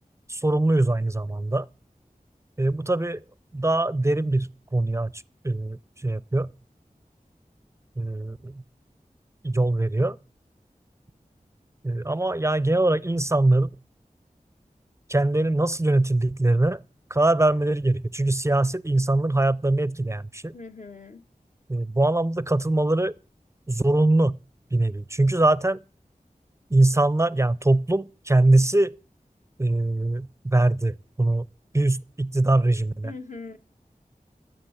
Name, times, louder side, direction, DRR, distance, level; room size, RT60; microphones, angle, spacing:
voice 1, 0.3-1.7 2.6-3.2 3.5-6.5 8.0-8.6 9.4-10.2 11.8-13.7 15.1-16.8 17.1-20.5 21.7-23.1 23.7-24.4 24.7-25.8 26.7-29.0 29.6-31.5 31.7-33.1, right 2 dB, 20° right, 0.5 m, -22 dB
voice 2, 20.5-21.2 33.0-33.6, left 4 dB, 55° left, 1.5 m, -40 dB
12.0 x 7.6 x 8.0 m
wide cardioid pair, 45°, 15 cm